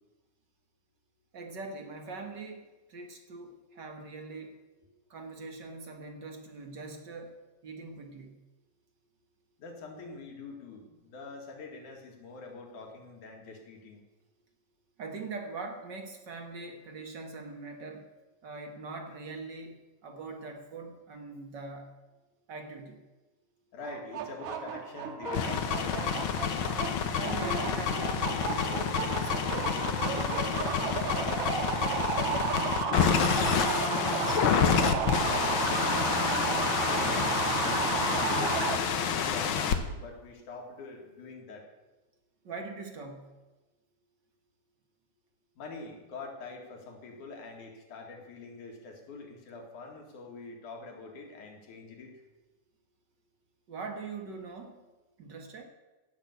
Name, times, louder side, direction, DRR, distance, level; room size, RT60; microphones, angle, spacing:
voice 1, 1.3-4.6 5.1-7.4 7.6-8.4 15.0-18.1 18.4-22.0 22.5-23.0 27.1-30.7 42.4-43.3 53.7-54.8 55.2-55.6, right 3 dB, 45° right, 4 dB, 1.6 m, -42 dB
voice 2, 9.6-14.0 23.7-26.2 34.4-37.2 37.6-41.6 45.6-52.1, left 3 dB, 75° left, 1 dB, 3.6 m, -44 dB
sound 1, 23.8-38.8, right 6 dB, 70° right, 2.4 m, -33 dB
sound 2, 25.3-39.8, left 7 dB, 90° left, 1.1 m, -29 dB
16.0 x 6.3 x 8.2 m, 1.1 s
omnidirectional pair, 3.6 m